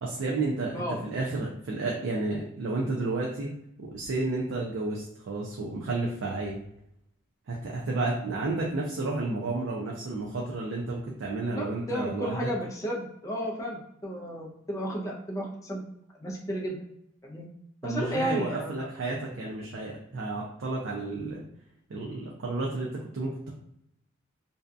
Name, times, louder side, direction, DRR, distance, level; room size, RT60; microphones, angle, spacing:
voice 1, 0.0-0.8 1.1-3.5 3.8-6.6 7.5-12.5 17.8-21.4 21.9-23.5, right 2 dB, 65° right, -2 dB, 0.4 m, -31 dB
voice 2, 11.5-15.8 16.2-16.8 17.2-17.5 17.8-18.9, equal, 15° left, -2 dB, 0.4 m, -33 dB
2.6 x 2.2 x 2.4 m, 0.76 s
head